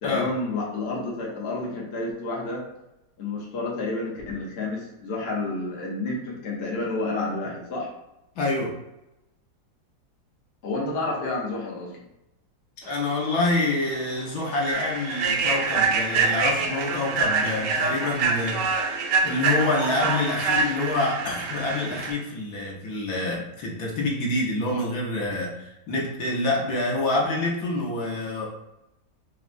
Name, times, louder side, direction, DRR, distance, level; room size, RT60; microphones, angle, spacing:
voice 1, 0.0-2.6 3.2-7.9 10.6-11.9, left 2 dB, 50° left, -3 dB, 0.8 m, -30 dB
voice 2, 8.4-8.7 12.8-19.0 19.2-28.5, left 2 dB, 70° left, -3 dB, 1.2 m, -27 dB
Human voice / Train, 13.3-13.4 13.8-14.0 14.5-22.1, right 4 dB, 80° right, 1.2 m, -25 dB
4.4 x 2.0 x 2.5 m, 0.90 s
omnidirectional pair, 1.8 m